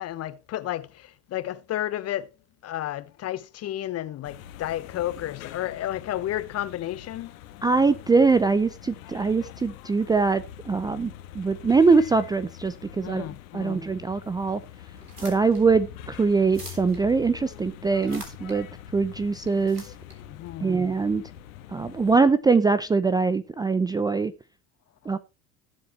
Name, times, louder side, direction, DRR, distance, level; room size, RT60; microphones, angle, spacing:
voice 1, 0.0-2.3 2.6-7.3 13.0-13.8 20.3-20.8, left 13 dB, 35° left, 1.1 m, -32 dB
sound 1, 4.2-22.2, left 11 dB, 60° left, 1.6 m, -44 dB
voice 2, 7.6-13.3 13.5-14.6 15.2-18.7 18.9-19.9 20.6-21.2 21.7-24.3 25.1-25.2, right 4 dB, 10° right, 0.5 m, -23 dB
sound 2, 15.0-21.4, right 1 dB, 90° right, 3.4 m, -47 dB
18.0 x 7.5 x 3.1 m
figure-of-eight pair, 70°, 45 cm